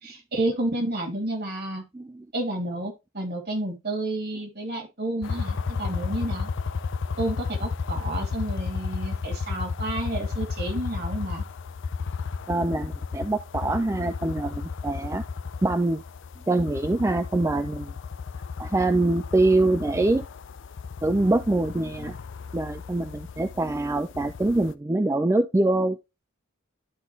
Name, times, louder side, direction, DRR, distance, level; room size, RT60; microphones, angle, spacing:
voice 1, 0.0-1.8 2.3-6.5 7.2-11.4, right 1 dB, 50° right, 4 dB, 2.5 m, -30 dB
sound 1, 5.2-24.7, left 5 dB, 60° left, 0.5 m, -33 dB
voice 2, 12.5-15.2 15.6-16.0 16.5-17.9 18.6-20.2 21.0-22.1 22.5-26.0, right 2 dB, 15° right, 9 dB, 0.4 m, -24 dB
12.0 x 4.0 x 3.1 m, 0.24 s
head